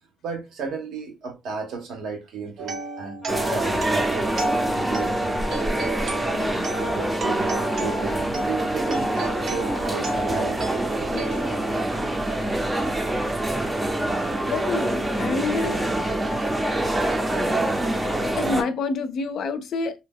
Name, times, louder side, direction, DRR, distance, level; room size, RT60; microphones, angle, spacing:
voice 1, 0.2-5.6 6.8-10.9, right 5 dB, 80° right, 0.9 m, -34 dB
sound 1, 2.6-12.5, right 2 dB, 60° right, 0.7 m, -32 dB
sound 2, 3.2-9.9, left 1 dB, 25° left, 0.8 m, -35 dB
sound 3, 3.3-18.6, right 1 dB, 20° right, 0.6 m, -26 dB
voice 2, 14.5-15.8 18.4-19.9, left 4 dB, 70° left, 0.5 m, -27 dB
2.7 x 2.2 x 3.4 m
cardioid pair, 90°, 0 cm